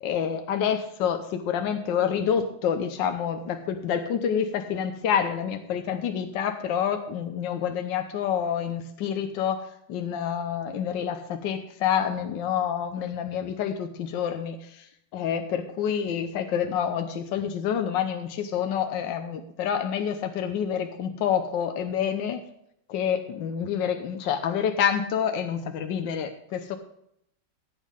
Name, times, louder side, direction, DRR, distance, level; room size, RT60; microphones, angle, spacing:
voice 1, 0.0-14.9 15.1-22.4 22.9-26.8, left 8 dB, 80° left, 7 dB, 1.5 m, -28 dB
16.0 x 8.4 x 3.6 m, 0.73 s
omnidirectional pair, 2.0 m